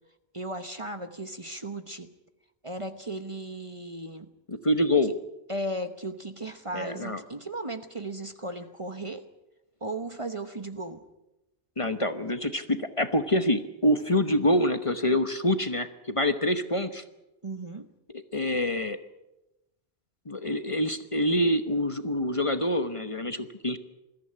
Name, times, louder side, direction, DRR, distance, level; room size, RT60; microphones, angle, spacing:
voice 1, 0.3-2.1 2.6-4.3 5.0-5.1 5.5-9.3 9.8-11.0 17.4-17.9, right 1 dB, 30° right, 9 dB, 1.0 m, -36 dB
voice 2, 4.5-5.1 6.7-7.2 11.8-17.0 18.1-19.0 20.3-23.8, left 1 dB, 30° left, 10 dB, 1.1 m, -26 dB
21.0 x 14.5 x 9.8 m, 0.98 s
omnidirectional pair, 1.1 m